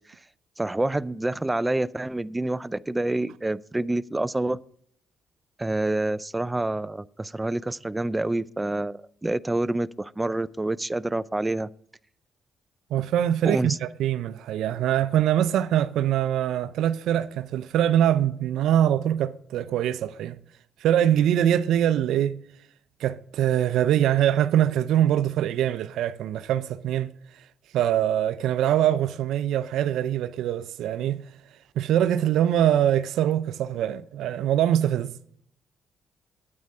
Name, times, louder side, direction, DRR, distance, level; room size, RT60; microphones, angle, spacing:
voice 1, 0.6-4.6 5.6-11.7 13.4-13.8, right 2 dB, 15° right, 0.4 m, -27 dB
voice 2, 12.9-20.4 20.8-22.4 23.0-27.1 27.7-31.2 31.8-35.1, right 11 dB, 80° right, 0.5 m, -23 dB
9.5 x 8.6 x 5.4 m
cardioid pair, 90°, 0 cm